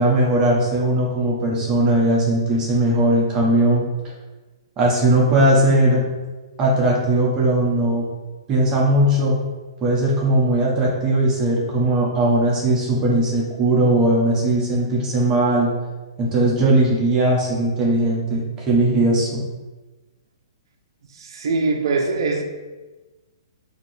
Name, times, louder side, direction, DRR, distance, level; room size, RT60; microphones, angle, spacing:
voice 1, 0.0-3.8 4.8-6.1 6.6-8.1 8.5-9.4 9.8-15.7 16.2-19.4, right 1 dB, 20° right, -4 dB, 0.9 m, -18 dB
voice 2, 21.1-22.4, right 3 dB, 65° right, 2 dB, 0.5 m, -22 dB
5.8 x 2.8 x 2.7 m, 1.2 s
hypercardioid pair, 150°, 3 cm